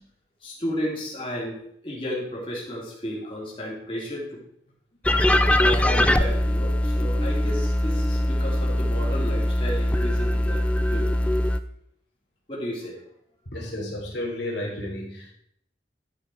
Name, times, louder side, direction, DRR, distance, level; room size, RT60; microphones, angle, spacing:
voice 1, 0.4-4.4 5.3-11.1 12.5-13.0 13.5-13.7, equal, 30° left, -6 dB, 3.2 m, -33 dB
sound 1, 5.0-11.6, left 1 dB, 5° left, 0.3 m, -22 dB
voice 2, 13.4-15.3, left 1 dB, 90° left, -2 dB, 3.3 m, -32 dB
12.0 x 5.5 x 4.7 m, 0.69 s
head